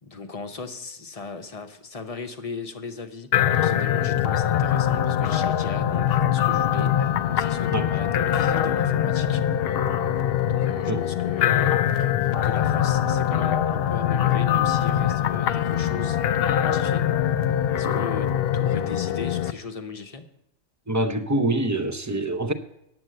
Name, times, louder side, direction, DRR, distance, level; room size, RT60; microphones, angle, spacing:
voice 1, 0.0-9.4 10.5-16.2 16.5-17.1 17.7-20.3, left 4 dB, 35° left, 0.8 m, -37 dB
sound 1, 3.3-19.5, left 10 dB, 60° left, 0.7 m, -23 dB
voice 2, 20.9-22.5, right 2 dB, 25° right, 0.4 m, -25 dB
9.6 x 7.9 x 7.6 m
omnidirectional pair, 1.3 m